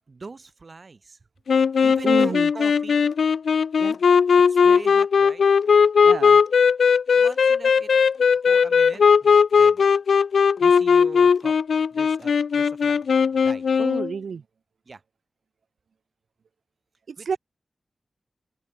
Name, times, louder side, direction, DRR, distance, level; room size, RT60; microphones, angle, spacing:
voice 1, 0.1-1.2 1.8-3.2 4.5-5.4 7.1-7.9 8.5-9.8 10.6-11.6 11.9-13.8 14.9-15.0 17.2-17.4, right 4 dB, 40° right, 6.5 m, -41 dB
sound 1, 1.5-14.1, left 6 dB, 85° left, 0.4 m, -18 dB
voice 2, 2.0-2.5 3.8-4.0 6.0-6.4 13.8-14.4 17.1-17.4, right 6 dB, 75° right, 1.7 m, -29 dB
open air
wide cardioid pair, 160°, 0 cm